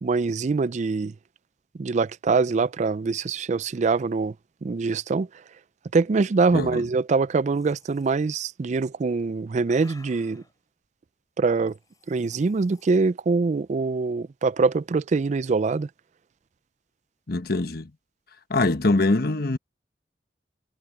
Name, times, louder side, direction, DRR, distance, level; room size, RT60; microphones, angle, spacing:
voice 1, 0.0-1.1 1.8-4.3 4.6-5.3 5.9-10.4 11.4-11.8 12.1-15.9, right 4 dB, 40° right, 0.4 m, -24 dB
voice 2, 6.5-6.8 17.3-17.9 18.5-19.6, left 2 dB, 60° left, 1.2 m, -23 dB
sound 1, 7.5-8.2 9.1-10.5 11.6-12.9, left 3 dB, 20° left, 7.4 m, -54 dB
head